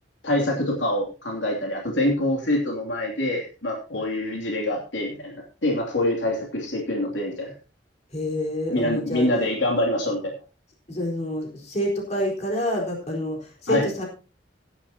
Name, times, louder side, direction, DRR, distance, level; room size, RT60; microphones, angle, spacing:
voice 1, 0.2-7.5 8.7-10.3 13.7-13.9, left 1 dB, 85° left, 0 dB, 2.8 m, -25 dB
voice 2, 8.1-9.3 10.9-14.0, left 1 dB, 40° left, 0 dB, 4.2 m, -27 dB
16.0 x 11.5 x 2.9 m, 0.34 s
head